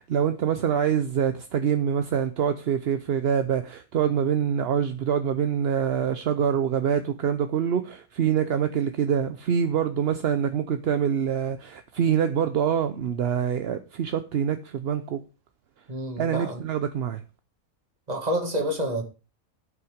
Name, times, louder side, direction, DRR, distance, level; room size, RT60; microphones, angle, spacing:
voice 1, 0.0-15.2 16.2-17.2, right 8 dB, 55° right, 0.8 m, -25 dB
voice 2, 15.9-16.6 18.1-19.0, equal, 30° right, 2.1 m, -28 dB
13.5 x 5.7 x 5.0 m
omnidirectional pair, 1.5 m